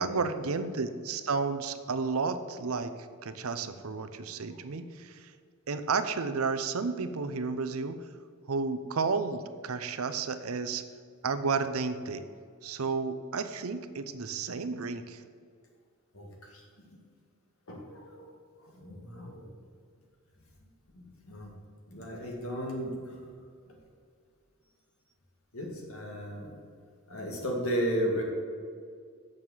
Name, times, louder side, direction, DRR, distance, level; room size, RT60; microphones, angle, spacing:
voice 1, 0.0-2.9 3.2-5.3 5.7-8.0 8.5-10.8 11.2-12.2 12.6-15.2, right 4 dB, 80° right, 10 dB, 0.7 m, -32 dB
voice 2, 17.7-18.3 18.8-19.4 21.0-21.5 21.9-22.9 25.5-26.5 27.1-28.2, equal, 75° left, 0 dB, 2.1 m, -34 dB
7.4 x 6.4 x 7.8 m, 2.2 s
head